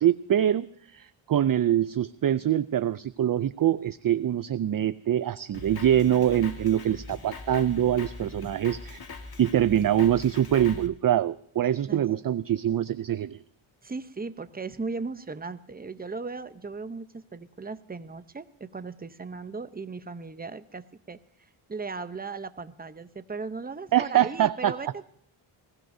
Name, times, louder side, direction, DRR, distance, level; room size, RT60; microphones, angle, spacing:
voice 1, 0.0-0.7 0.9-9.0 9.4-13.4 23.9-24.7, right 11 dB, 45° right, 15 dB, 0.4 m, -24 dB
Drum kit, 5.5-10.9, left 3 dB, 45° left, 1.8 m, -41 dB
voice 2, 13.8-25.1, right 4 dB, 20° right, 11 dB, 0.8 m, -37 dB
21.0 x 16.0 x 2.7 m, 0.67 s
wide cardioid pair, 90°, 50 cm